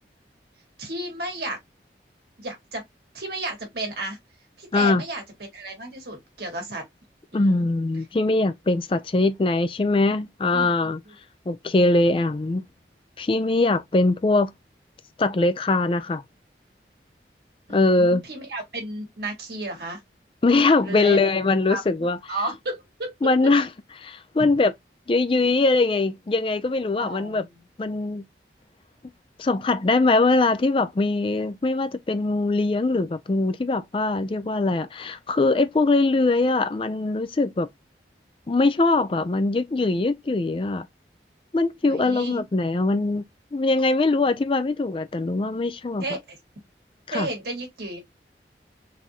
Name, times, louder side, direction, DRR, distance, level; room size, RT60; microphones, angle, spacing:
voice 1, 0.8-1.6 2.4-2.8 3.1-4.2 4.6-5.2 5.5-6.9 7.3-7.6 10.5-11.1 17.7-20.0 20.8-21.3 21.7-21.8 22.3-23.5 24.4-24.5 27.0-27.6 41.9-42.4 46.0-46.4 47.1-48.0, right 2 dB, 65° right, 1.6 m, -33 dB
voice 2, 4.7-5.0 7.3-11.0 11.5-12.6 13.2-14.5 15.2-16.2 17.7-18.2 20.4-22.2 23.2-23.7 24.0-24.7 25.1-27.5 27.8-28.2 29.4-37.7 38.5-40.9 41.5-43.2 43.5-46.0 47.1-47.3, left 3 dB, 30° left, 0.4 m, -22 dB
3.8 x 2.6 x 2.8 m
head